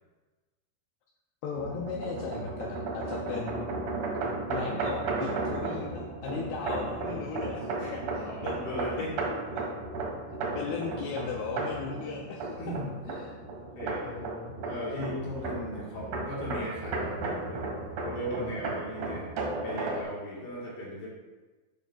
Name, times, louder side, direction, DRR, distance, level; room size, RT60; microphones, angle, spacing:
voice 1, 1.4-3.7 4.5-8.7 9.0-9.2 9.5-9.6 10.3-12.7 13.0-13.4 14.1-14.6 18.4-18.5, left 5 dB, 80° left, 0 dB, 2.4 m, -37 dB
sound 1, 1.6-20.0, right 3 dB, 55° right, 2.1 m, -34 dB
voice 2, 7.8-9.1 12.6-12.9 13.6-14.1 14.6-17.7 18.0-19.3 19.6-21.1, equal, 55° left, -6 dB, 2.7 m, -37 dB
10.5 x 6.2 x 2.4 m, 1.2 s
omnidirectional pair, 5.1 m